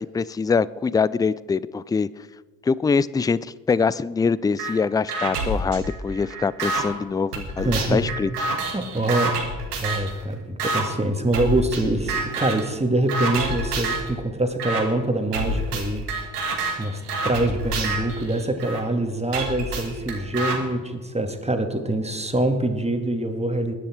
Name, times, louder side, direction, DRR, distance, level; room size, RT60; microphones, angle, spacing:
voice 1, 0.0-2.1 2.7-3.4 3.7-8.3, left 5 dB, 10° left, 20 dB, 0.3 m, -23 dB
sound 1, 4.6-4.7 5.1-6.8 7.3-10.1 10.6-10.8 11.3-11.8 12.1-12.7 13.1-14.1 14.6-14.8 15.3-18.8 19.3-20.6, right 2 dB, 85° right, 1.6 m, -27 dB
voice 2, 7.6-8.0 8.7-9.3 9.8-16.1 16.8-23.7, right 1 dB, 15° right, 5 dB, 2.2 m, -24 dB
20.5 x 10.0 x 4.5 m, 1.4 s
figure-of-eight pair, 40°, 45 cm